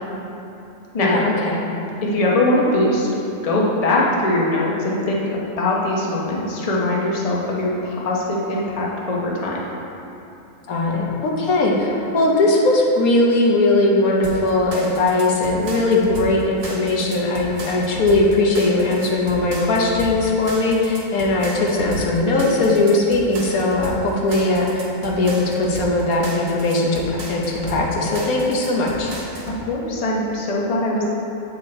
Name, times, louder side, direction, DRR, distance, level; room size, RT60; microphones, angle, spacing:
voice 1, 1.0-1.6 10.7-29.1, left 2 dB, 85° left, -2 dB, 1.4 m, -19 dB
voice 2, 2.0-3.1 3.4-9.6 29.6-31.0, left 1 dB, 30° left, -4 dB, 0.8 m, -21 dB
sound 1, 14.2-29.6, right 2 dB, 70° right, 1.4 m, -34 dB
8.1 x 4.4 x 4.2 m, 2.9 s
omnidirectional pair, 1.5 m